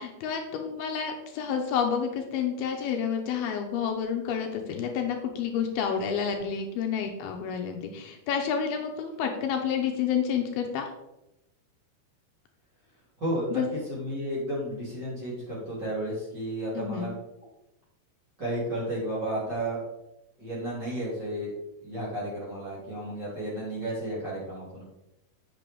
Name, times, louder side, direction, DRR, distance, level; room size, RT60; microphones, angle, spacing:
voice 1, 0.0-10.9 13.5-13.7 16.7-17.1, left 7 dB, 80° left, 3 dB, 2.6 m, -29 dB
voice 2, 13.2-13.6 13.9-17.1 18.4-19.8 20.4-21.5 21.8-24.9, right 1 dB, 30° right, -7 dB, 3.1 m, -32 dB
8.0 x 7.7 x 3.4 m, 0.91 s
omnidirectional pair, 4.7 m